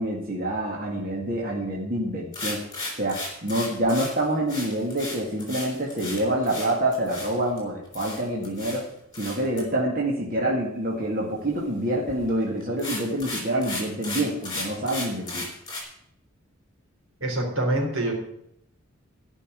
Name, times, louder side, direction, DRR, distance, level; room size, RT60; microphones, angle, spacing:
voice 1, 0.0-2.6 3.0-8.8 9.2-15.5, right 1 dB, 40° right, -3 dB, 2.1 m, -27 dB
sound 1, 2.3-7.6 7.9-8.8 9.1-9.6 12.1-12.3 12.6-15.8, left 2 dB, 15° left, 3.5 m, -35 dB
voice 2, 17.2-18.1, right 1 dB, 70° right, 1 dB, 3.5 m, -25 dB
13.0 x 5.6 x 9.4 m, 0.76 s
head